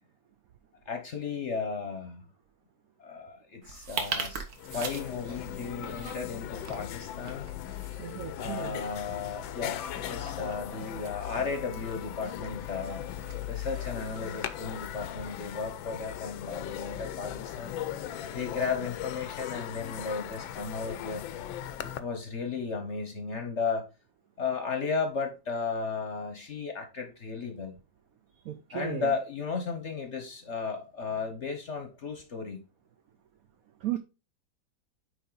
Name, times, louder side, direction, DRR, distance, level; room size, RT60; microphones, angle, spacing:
voice 1, 0.9-2.2 3.0-4.4 4.7-7.5 8.4-13.1 13.5-21.2 21.8-23.9 24.4-27.7 28.7-32.6, left 5 dB, 45° left, 1.0 m, -35 dB
sound 1, 3.6-15.7, right 5 dB, 55° right, 1.5 m, -43 dB
sound 2, 4.3-4.4 4.5-22.0, left 11 dB, 85° left, 1.4 m, -38 dB
voice 2, 8.0-8.8 28.5-29.1 33.8-34.0, right 13 dB, 80° right, 0.8 m, -35 dB
9.1 x 3.5 x 3.9 m
omnidirectional pair, 2.1 m